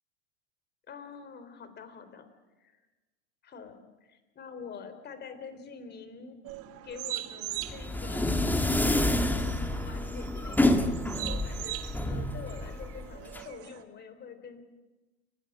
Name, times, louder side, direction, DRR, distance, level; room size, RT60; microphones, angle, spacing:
voice 1, 0.9-2.3 2.6-2.8 3.4-6.4 6.8-14.6, left 6 dB, 30° left, 10 dB, 3.8 m, -46 dB
sound 1, 6.4-13.8, right 15 dB, 40° right, 1.7 m, -42 dB
sound 2, 7.6-13.4, left 1 dB, 5° left, 1.8 m, -28 dB
28.5 x 16.0 x 9.1 m, 1.1 s
hypercardioid pair, 95°, 35 cm